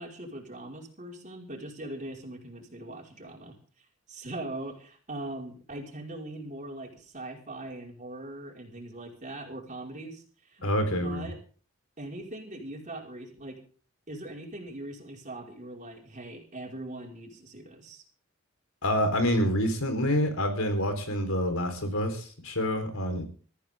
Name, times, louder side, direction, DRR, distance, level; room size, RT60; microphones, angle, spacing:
voice 1, 0.0-3.6 4.1-10.7 11.0-11.4 12.0-13.6 14.1-18.0, right 1 dB, 35° right, 0 dB, 5.2 m, -41 dB
voice 2, 10.6-11.3 18.8-23.3, equal, 85° left, 6 dB, 4.3 m, -27 dB
23.5 x 14.5 x 3.7 m, 0.41 s
head